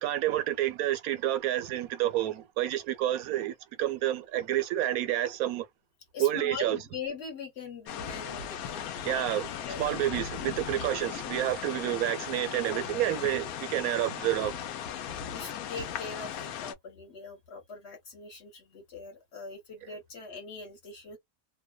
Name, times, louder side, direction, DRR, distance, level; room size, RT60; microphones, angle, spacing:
voice 1, 0.0-5.7 6.2-6.8 9.0-9.5 9.8-14.6, right 13 dB, 75° right, 1.0 m, -29 dB
voice 2, 6.1-9.2 9.7-9.9 13.0-13.2 15.3-21.2, left 4 dB, 50° left, 1.2 m, -42 dB
sound 1, 7.9-16.7, left 9 dB, 80° left, 1.1 m, -37 dB
2.6 x 2.1 x 2.2 m
omnidirectional pair, 1.5 m